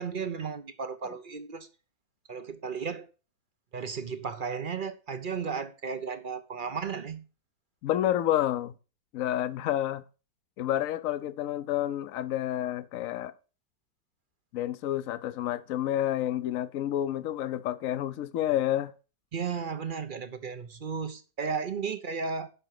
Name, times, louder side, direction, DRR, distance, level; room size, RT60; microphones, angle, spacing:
voice 1, 0.0-1.7 2.3-3.1 3.7-7.3 19.3-22.5, right 5 dB, 45° right, 0.7 m, -34 dB
voice 2, 7.8-8.7 9.1-10.0 10.6-13.3 14.5-18.9, left 12 dB, 60° left, 1.0 m, -29 dB
9.9 x 6.0 x 6.5 m
omnidirectional pair, 1.8 m